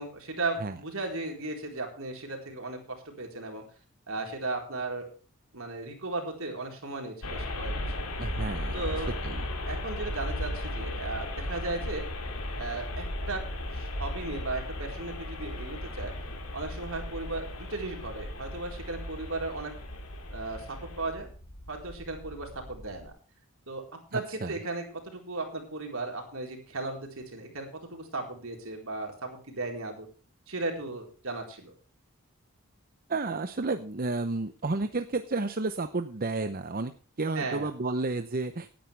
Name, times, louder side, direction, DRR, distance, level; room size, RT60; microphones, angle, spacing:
voice 1, 0.0-3.6 4.1-5.0 5.5-7.7 8.7-9.2 9.7-12.0 12.6-13.4 13.7-16.1 16.5-19.7 20.3-21.3 21.7-23.1 23.7-23.8 24.1-30.1 30.5-31.7 37.3-37.7, right 3 dB, 65° right, 2 dB, 4.3 m, -36 dB
sound 1, 7.2-23.1, left 1 dB, 75° left, 2.9 m, -36 dB
voice 2, 8.2-8.8 9.2-9.4 24.1-24.6 33.1-36.9 37.2-38.7, right 3 dB, 40° right, 9 dB, 0.8 m, -31 dB
17.5 x 10.5 x 3.4 m, 0.39 s
head